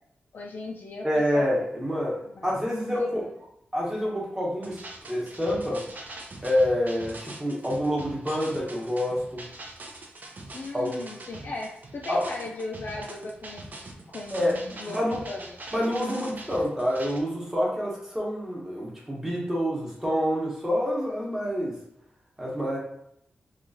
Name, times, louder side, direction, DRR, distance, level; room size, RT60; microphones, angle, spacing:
voice 1, 0.3-1.5 2.3-3.1 10.5-13.8 14.1-15.0 15.3-15.4, left 2 dB, 60° left, -2 dB, 0.3 m, -37 dB
voice 2, 1.0-3.3 3.7-4.8 5.1-5.8 6.4-9.5 10.7-11.1 12.1-12.3 14.3-14.6 14.9-15.2 15.7-21.8 22.4-22.8, equal, 10° right, -4 dB, 1.0 m, -27 dB
sound 1, 4.6-17.2, right 2 dB, 50° right, 0.5 m, -43 dB
3.0 x 2.4 x 2.6 m, 0.75 s
wide cardioid pair, 105°, 4 cm